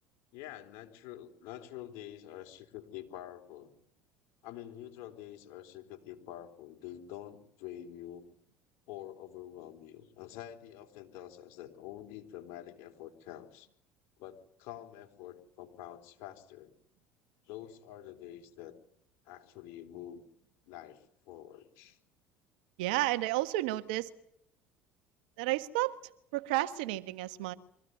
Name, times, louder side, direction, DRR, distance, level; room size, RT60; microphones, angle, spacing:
voice 1, 0.3-3.7 4.4-8.3 8.9-13.7 14.2-16.7 17.4-18.8 19.3-20.2 20.7-22.0, left 12 dB, 70° left, 4 dB, 3.8 m, -47 dB
voice 2, 22.8-24.1 25.4-26.0 26.3-27.5, right 17 dB, 80° right, 11 dB, 1.5 m, -31 dB
24.5 x 16.0 x 9.5 m, 0.73 s
hypercardioid pair, 75°, 5 cm